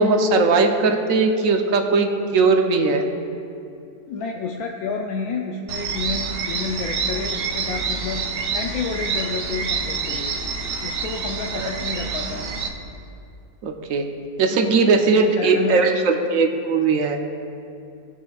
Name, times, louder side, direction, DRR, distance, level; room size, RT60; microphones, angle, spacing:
voice 1, 0.0-3.0 11.5-11.7 13.6-14.0 14.4-17.2, right 4 dB, 65° right, 4 dB, 1.0 m, -19 dB
voice 2, 4.1-8.2 8.5-10.4 10.8-12.5 14.6-14.8 15.1-15.9, left 4 dB, 70° left, 1 dB, 1.0 m, -29 dB
sound 1, 5.7-12.7, right 5 dB, 85° right, 1.4 m, -27 dB
17.5 x 5.9 x 2.3 m, 2.6 s
omnidirectional pair, 1.7 m